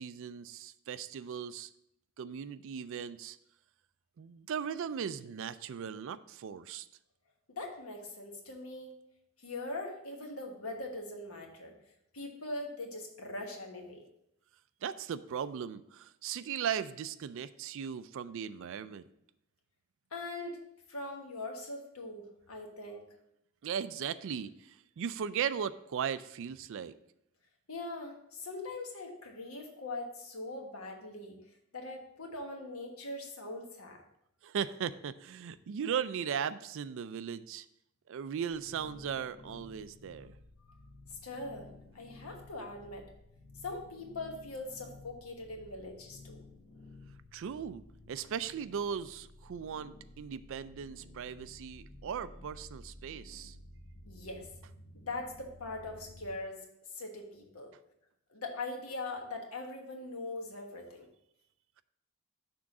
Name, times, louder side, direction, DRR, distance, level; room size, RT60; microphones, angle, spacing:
voice 1, 0.0-1.7 2.2-3.4 4.2-6.9 14.8-19.1 23.6-26.9 34.4-37.7 38.1-40.3 47.3-47.8 48.1-53.6, right 7 dB, 65° right, 14 dB, 0.3 m, -37 dB
voice 2, 7.6-8.9 9.4-11.7 12.1-14.1 20.1-20.6 20.9-23.1 27.7-31.4 31.7-34.0 41.1-41.7 41.9-43.1 43.6-46.4 54.1-54.5 54.9-56.6 56.9-57.7 58.3-61.1, left 2 dB, 85° left, 2 dB, 1.3 m, -41 dB
sound 1, 38.5-56.4, left 2 dB, 70° left, 1.3 m, -54 dB
6.1 x 3.7 x 5.9 m, 0.77 s
head